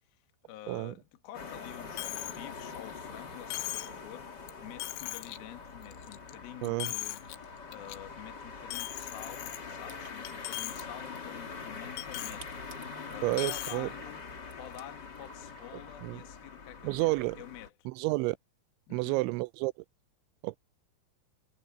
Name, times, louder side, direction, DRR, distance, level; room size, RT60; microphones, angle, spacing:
voice 1, 0.0-12.6 13.1-14.3 14.5-17.1 17.4-17.9 18.9-19.2, left 13 dB, 65° left, 2.8 m, -49 dB
sound 1, 1.3-17.7, left 5 dB, 40° left, 1.5 m, -44 dB
Coin (dropping), 2.0-2.4 2.8-2.9 3.5-4.0 4.5-4.6 4.8-5.4 5.8-6.3 6.6-7.4 7.7-8.0 8.7-9.9 10.3-10.8 11.2-11.3 12.0-12.4 13.3-13.8, left 18 dB, 85° left, 3.4 m, -38 dB
voice 2, 6.6-6.9 13.2-13.9 16.0-16.2 16.8-17.4 17.9-18.4 18.9-19.7 20.4-20.6, right 23 dB, 85° right, 2.8 m, -30 dB
sound 2, 9.9-16.5, right 6 dB, 45° right, 1.4 m, -58 dB
omnidirectional pair, 5.4 m